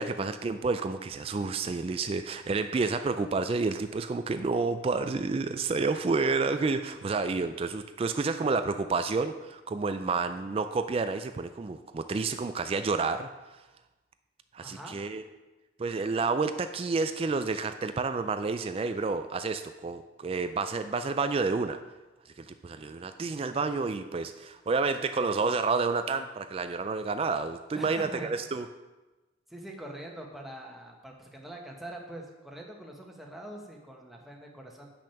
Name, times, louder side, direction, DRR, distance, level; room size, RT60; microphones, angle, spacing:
voice 1, 0.0-13.3 14.5-15.2 15.8-21.8 22.4-28.7, right 4 dB, 30° right, 9 dB, 0.3 m, -30 dB
voice 2, 14.6-15.0 27.7-28.6 29.5-34.9, right 1 dB, ahead, -1 dB, 1.3 m, -44 dB
8.7 x 6.2 x 5.7 m, 1.1 s
head